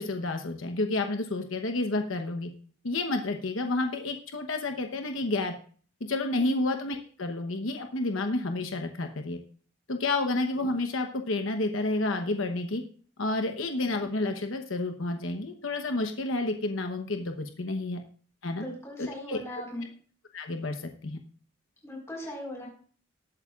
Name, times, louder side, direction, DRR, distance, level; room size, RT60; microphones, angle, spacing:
voice 1, 0.0-2.5 2.8-5.5 6.0-9.4 9.9-12.8 13.2-18.0 18.4-18.6 19.0-19.6 20.3-21.2, left 2 dB, 80° left, 5 dB, 1.0 m, -30 dB
voice 2, 18.5-19.8 21.8-22.7, left 1 dB, 15° left, -2 dB, 4.5 m, -38 dB
19.5 x 8.4 x 2.5 m, 0.43 s
head